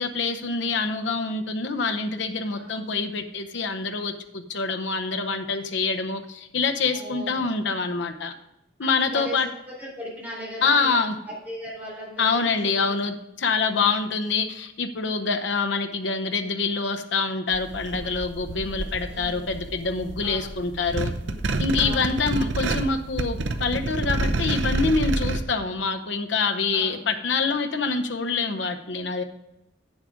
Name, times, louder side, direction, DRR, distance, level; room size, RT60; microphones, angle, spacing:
voice 1, 0.0-8.3 8.8-9.5 10.6-11.2 12.2-21.1 21.6-29.2, left 4 dB, 75° left, 7 dB, 0.8 m, -26 dB
voice 2, 2.5-2.9 6.9-7.5 9.0-11.0 11.4-12.8 15.2-15.5 18.5-19.5 20.2-20.6 21.8-22.1 26.7-27.0, equal, 10° right, -5 dB, 4.2 m, -39 dB
sound 1, 17.5-25.4, right 2 dB, 85° right, 0.7 m, -28 dB
8.7 x 7.3 x 5.0 m, 0.89 s
head